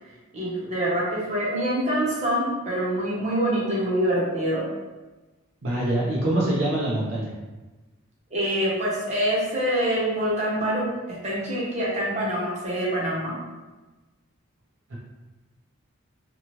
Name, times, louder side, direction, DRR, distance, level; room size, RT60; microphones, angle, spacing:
voice 1, 0.3-4.7 8.3-13.3, right 1 dB, 35° right, -7 dB, 0.9 m, -25 dB
voice 2, 5.6-7.3 14.9-15.0, right 1 dB, 65° right, -6 dB, 0.7 m, -24 dB
2.9 x 2.3 x 3.0 m, 1.2 s
head